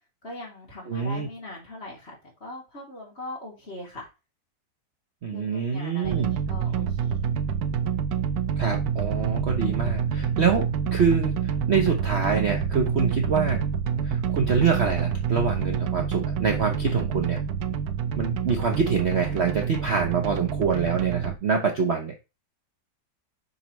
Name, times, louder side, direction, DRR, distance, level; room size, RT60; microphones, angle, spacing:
voice 1, 0.2-4.0 5.3-7.3, left 1 dB, 35° left, -3 dB, 3.2 m, -41 dB
voice 2, 0.9-1.3 5.2-6.3 8.6-13.6 14.0-17.4 18.1-22.1, right 5 dB, 45° right, 3 dB, 1.0 m, -25 dB
sound 1, 6.0-21.4, right 7 dB, 65° right, 1.1 m, -27 dB
7.0 x 5.6 x 3.1 m, 0.28 s
omnidirectional pair, 1.9 m